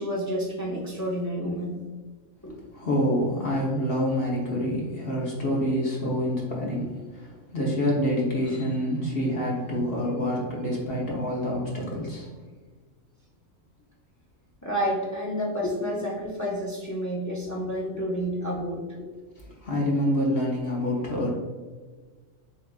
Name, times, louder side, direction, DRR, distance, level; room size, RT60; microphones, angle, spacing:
voice 1, 0.0-1.8 2.4-2.5 14.6-18.8, equal, 25° left, -3 dB, 0.4 m, -29 dB
voice 2, 2.7-12.3 19.4-21.3, equal, 50° left, -2 dB, 0.9 m, -27 dB
7.1 x 2.4 x 2.3 m, 1.4 s
omnidirectional pair, 1.4 m